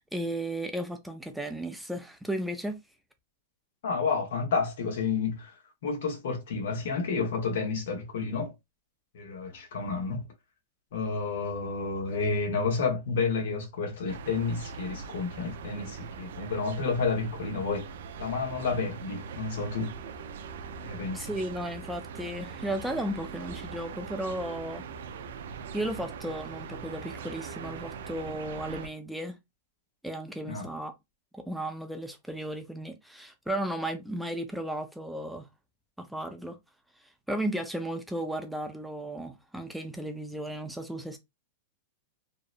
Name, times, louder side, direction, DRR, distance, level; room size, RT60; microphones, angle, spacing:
voice 1, 0.0-2.7 21.1-24.9 25.7-29.4 30.0-30.9 31.3-35.5 36.0-36.6 37.0-41.2, right 1 dB, ahead, 0.3 m, -35 dB
voice 2, 3.8-5.5 5.8-8.5 9.1-10.3 10.9-17.9 18.2-20.0 20.8-21.3 30.5-30.7, left 4 dB, 75° left, 1.0 m, -30 dB
sound 1, 14.1-28.9, right 6 dB, 75° right, 0.4 m, -41 dB
2.8 x 2.0 x 2.4 m
supercardioid pair, 140°, 0 cm